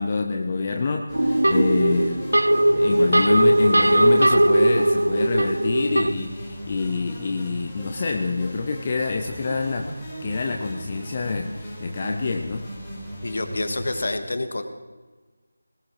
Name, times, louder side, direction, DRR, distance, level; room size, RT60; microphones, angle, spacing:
voice 1, 0.0-2.2 2.7-9.9 10.2-12.7, left 4 dB, 30° left, 4 dB, 0.8 m, -26 dB
sound 1, 1.1-14.1, equal, 15° left, 4.2 m, -36 dB
sound 2, 1.1-6.1, right 1 dB, 75° right, 0.6 m, -19 dB
voice 2, 13.2-14.6, left 2 dB, 55° left, 8 dB, 1.5 m, -27 dB
20.0 x 19.5 x 3.1 m, 1.3 s
figure-of-eight pair, 160°, 0 cm